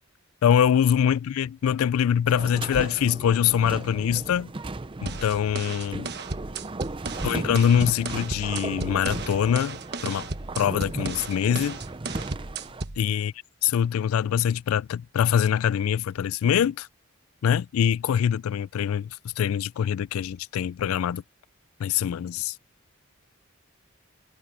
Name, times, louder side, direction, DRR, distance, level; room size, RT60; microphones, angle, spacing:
voice 1, 0.4-4.5 5.0-6.1 7.2-10.3 10.6-11.8 13.0-13.3 13.6-16.9 17.4-21.2 21.8-22.5, left 9 dB, 90° left, 0.3 m, -24 dB
sound 1, 2.3-12.8, right 2 dB, 25° right, 0.6 m, -36 dB
sound 2, 5.1-13.0, right 4 dB, 50° right, 1.3 m, -35 dB
voice 2, 12.7-12.9 22.2-22.5, left 2 dB, 35° left, 6.9 m, -58 dB
head